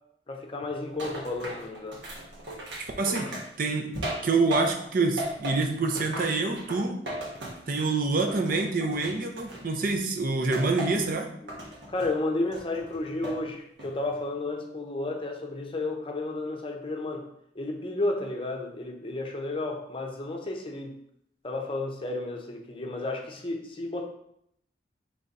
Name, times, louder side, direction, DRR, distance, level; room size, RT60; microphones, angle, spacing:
voice 1, 0.3-2.0 11.4-17.2 17.5-21.0 21.4-24.0, left 2 dB, 30° left, 2 dB, 0.6 m, -32 dB
sound 1, 1.0-4.9 5.2-8.0 8.3-9.9 10.5-11.1 11.5-12.1 12.5-13.4 13.8-14.2, right 1 dB, 75° right, 1.3 m, -37 dB
voice 2, 3.0-3.3 3.6-3.9 4.2-7.0 7.7-11.3, right 3 dB, 55° right, 3 dB, 0.6 m, -26 dB
3.8 x 3.3 x 4.0 m, 0.74 s
head